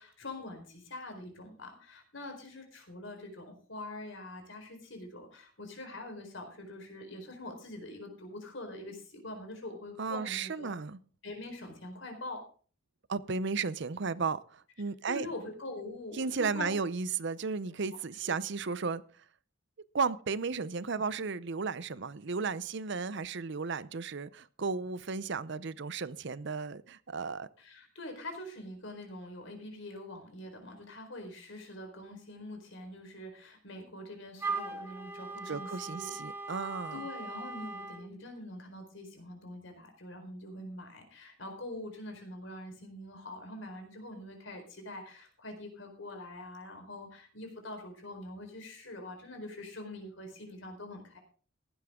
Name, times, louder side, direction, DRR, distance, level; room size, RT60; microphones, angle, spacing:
voice 1, 0.0-10.7 11.2-12.4 15.0-16.8 17.6-17.7 27.6-36.1 36.6-51.2, left 1 dB, 70° left, 4.3 m, -44 dB
voice 2, 10.0-11.0 13.1-15.3 16.2-19.0 19.9-27.5 35.5-37.0, right 5 dB, 65° right, 0.7 m, -34 dB
Wind instrument woodwind instrument, 34.4-38.1, right 3 dB, 10° right, 2.1 m, -39 dB
15.5 x 11.0 x 3.7 m
head